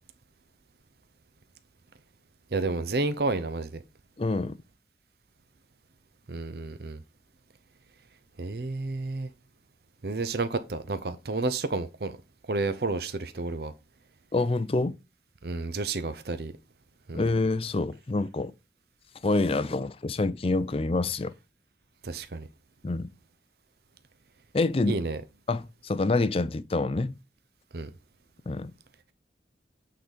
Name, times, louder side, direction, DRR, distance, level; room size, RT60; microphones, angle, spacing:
voice 1, 2.5-3.8 6.3-7.0 8.4-9.3 10.0-12.2 12.5-13.7 15.4-16.5 17.1-17.3 22.0-22.5 24.9-25.2 27.7-27.9, right 3 dB, 55° right, 0.6 m, -30 dB
voice 2, 4.2-4.6 14.3-15.0 17.1-18.5 19.2-21.3 22.8-23.1 24.5-25.0 25.5-27.2 28.5-28.7, left 3 dB, 30° left, 0.4 m, -27 dB
8.6 x 3.9 x 5.1 m
head